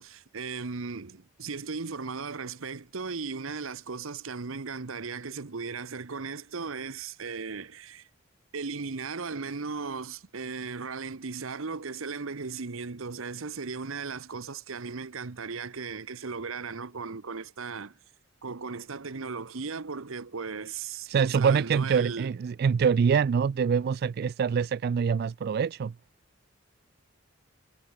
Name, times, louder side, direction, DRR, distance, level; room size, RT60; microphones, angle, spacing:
voice 1, 0.0-8.1 8.5-18.0 18.4-22.4, right 4 dB, 75° right, 1.0 m, -36 dB
voice 2, 21.1-25.9, right 6 dB, 50° right, 0.3 m, -25 dB
head